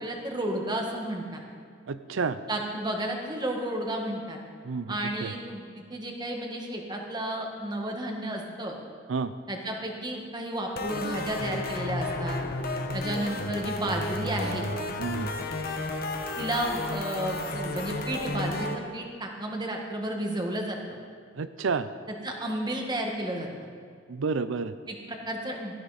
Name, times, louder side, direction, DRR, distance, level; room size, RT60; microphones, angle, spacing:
voice 1, 0.0-1.4 2.5-4.4 4.9-5.6 5.9-8.8 9.5-12.4 12.9-14.7 16.4-20.8 22.2-23.5 24.9-25.8, right 1 dB, 20° right, 1 dB, 1.7 m, -32 dB
voice 2, 1.9-2.4 4.6-4.9 5.2-5.3 9.1-9.3 15.0-15.3 21.4-21.9 24.1-24.7, right 5 dB, 90° right, 12 dB, 0.5 m, -29 dB
sound 1, 10.8-18.8, left 2 dB, 50° left, 1.2 m, -32 dB
17.5 x 13.5 x 4.2 m, 2.1 s
head